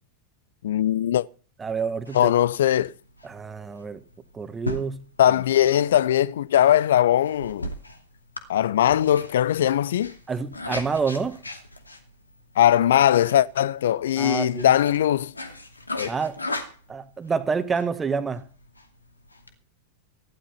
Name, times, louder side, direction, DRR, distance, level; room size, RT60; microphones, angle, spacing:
voice 1, 0.6-1.2 2.1-2.9 5.2-7.7 8.5-10.1 12.6-15.3 16.0-16.2, left 11 dB, 60° left, 0.6 m, -20 dB
voice 2, 1.6-2.3 3.2-4.0 4.3-5.0 10.3-11.4 14.2-14.7 16.1-16.4 16.9-18.4, right 5 dB, 15° right, 1.6 m, -28 dB
sound 1, 1.7-19.5, left 1 dB, 80° left, 2.5 m, -39 dB
16.0 x 11.5 x 5.7 m
figure-of-eight pair, 90°, 0 cm